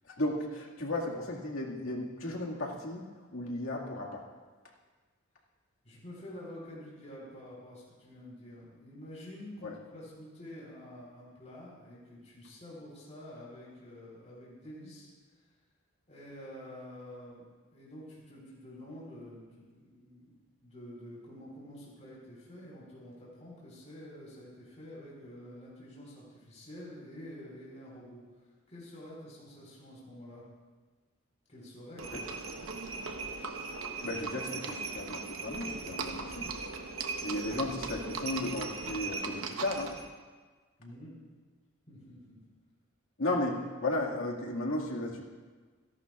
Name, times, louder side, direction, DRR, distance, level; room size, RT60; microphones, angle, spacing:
voice 1, 0.0-3.0 3.3-4.3 9.6-9.8 32.1-32.2 34.0-36.5 37.2-39.9 43.2-45.2, left 2 dB, 80° left, -1 dB, 2.0 m, -35 dB
voice 2, 5.8-15.1 16.1-30.4 31.5-32.1 32.6-33.0 40.8-41.1 41.9-42.4, left 1 dB, 35° left, -6 dB, 4.2 m, -48 dB
Livestock farm animals working animals, 32.0-40.1, right 4 dB, 75° right, 1.0 m, -38 dB
27.0 x 11.5 x 2.5 m, 1.4 s
head